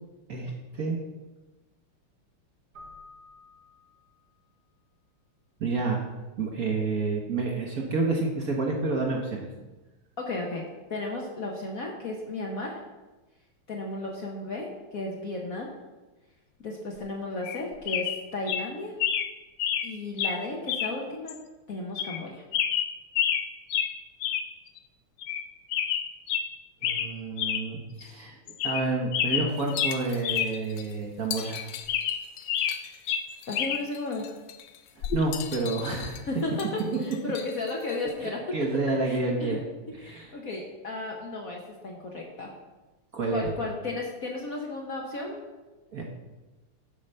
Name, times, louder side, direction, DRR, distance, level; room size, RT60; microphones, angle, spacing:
voice 1, 0.3-1.0 5.6-6.0 6.4-9.5 26.8-28.4 28.6-31.6 35.0-36.3 38.2-39.6 39.9-40.4 43.1-43.5 45.9-46.0, right 3 dB, 50° right, 0 dB, 1.2 m, -29 dB
Keyboard (musical), 2.7-4.6, left 2 dB, 70° right, 2.9 m, -51 dB
voice 2, 10.2-10.6 10.9-12.8 13.7-15.7 16.6-18.9 19.8-21.4 21.7-22.4 33.5-34.2 36.3-38.4 39.0-39.6 40.0-42.5 43.3-45.4, left 2 dB, 50° left, 0 dB, 1.1 m, -34 dB
sound 1, 17.4-17.6 17.9-18.2 18.5-18.6 19.0-19.3 19.6-19.9 20.2-20.4 20.7-20.9 21.3-21.4 22.0-22.2 22.5-23.4 23.7-23.9 24.2-24.5 24.8-24.9 25.2-25.4 25.7-26.5 26.8-27.1 27.4-27.6 28.0-28.1 28.5-28.9 29.1-30.5 30.8-30.9 31.4-32.8 33.1-33.8 35.0-35.2, left 9 dB, 70° left, 1.1 m, -28 dB
sound 2, 29.5-38.1, left 9 dB, 85° left, 1.7 m, -42 dB
8.7 x 4.7 x 6.6 m, 1.1 s
omnidirectional pair, 2.4 m